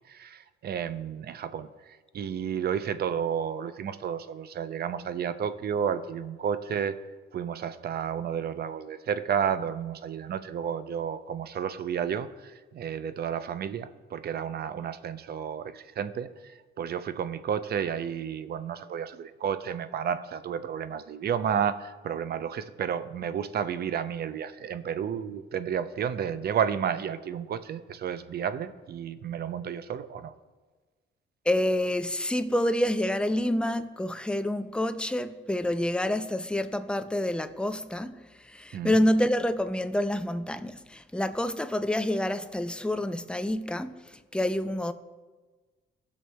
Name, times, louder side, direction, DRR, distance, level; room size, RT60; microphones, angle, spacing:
voice 1, 0.1-7.0 7.3-16.5 16.8-30.3 38.7-39.0, right 8 dB, 50° right, 0.5 m, -31 dB
voice 2, 31.5-44.9, left 1 dB, 5° left, 0.5 m, -28 dB
17.5 x 6.2 x 2.2 m
cardioid pair, 90°, 20 cm